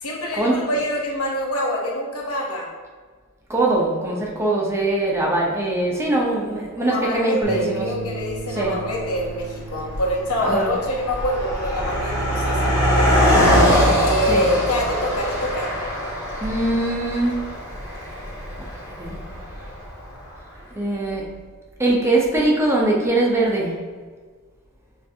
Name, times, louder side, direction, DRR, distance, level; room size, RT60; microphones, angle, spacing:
voice 1, 0.0-2.7 6.8-13.3 14.0-15.7, equal, 85° left, -2 dB, 1.0 m, -25 dB
voice 2, 3.5-7.9 8.5-8.7 10.4-10.7 14.3-14.5 16.4-17.3 18.9-19.2 20.7-21.3 21.8-23.7, right 2 dB, 10° right, -3 dB, 0.6 m, -22 dB
sound 1, 7.4-13.7, right 2 dB, 50° right, 0.9 m, -37 dB
Car passing by, 8.3-8.4 9.1-9.4 9.7-20.1, equal, 15° left, 1.2 m, -22 dB
6.5 x 2.6 x 2.7 m, 1.5 s
head